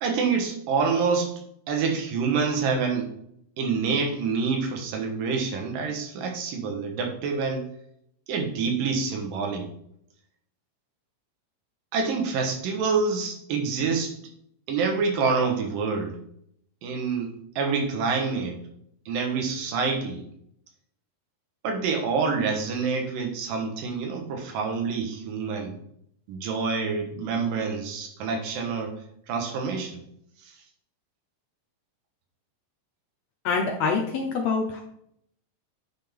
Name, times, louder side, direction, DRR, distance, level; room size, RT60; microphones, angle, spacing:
voice 1, 0.0-1.4 1.7-3.1 3.6-7.7 8.3-9.7 11.9-14.2 14.7-16.2 16.8-18.6 19.1-20.2 21.6-25.8 26.3-29.0 29.3-30.0, right 5 dB, 80° right, 4 dB, 3.0 m, -27 dB
voice 2, 33.4-34.8, left 4 dB, 70° left, 2 dB, 1.7 m, -25 dB
9.7 x 5.8 x 3.6 m, 0.70 s
omnidirectional pair, 3.9 m